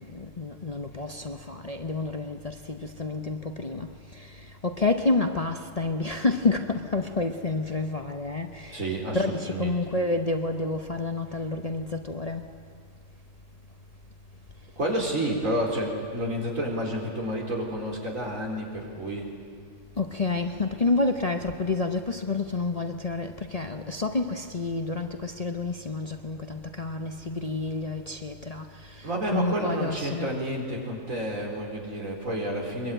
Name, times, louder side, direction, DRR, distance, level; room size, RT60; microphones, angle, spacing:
voice 1, 0.0-12.5 15.7-15.8 20.0-30.4, left 3 dB, 30° left, 0.9 m, -29 dB
voice 2, 8.7-9.2 9.5-9.7 14.8-19.3 29.0-32.9, right 1 dB, 80° right, 4.4 m, -30 dB
22.5 x 22.5 x 9.1 m
omnidirectional pair, 1.4 m